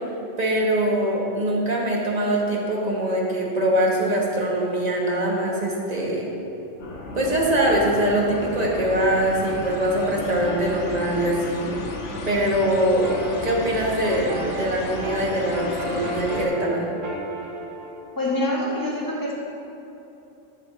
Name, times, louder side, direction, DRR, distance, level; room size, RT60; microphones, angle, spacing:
voice 1, 0.4-6.3 7.1-11.7 12.2-13.0 13.4-16.9, right 1 dB, 35° right, -2 dB, 1.3 m, -23 dB
sound 1, 6.8-16.5, left 2 dB, 70° left, 1.2 m, -34 dB
sound 2, 12.8-18.0, right 2 dB, 90° right, 1.3 m, -34 dB
voice 2, 18.1-19.3, left 1 dB, 15° left, -7 dB, 1.6 m, -25 dB
11.5 x 4.9 x 4.1 m, 2.9 s
omnidirectional pair, 1.3 m